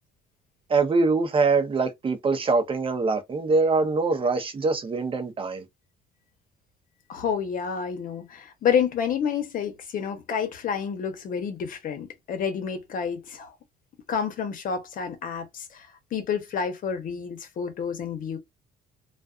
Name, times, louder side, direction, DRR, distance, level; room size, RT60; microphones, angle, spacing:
voice 1, 0.7-5.7, right 4 dB, 30° right, 0.7 m, -23 dB
voice 2, 7.1-13.5 14.1-18.4, left 7 dB, 55° left, 0.8 m, -29 dB
2.4 x 2.3 x 2.4 m
cardioid pair, 110°, 17 cm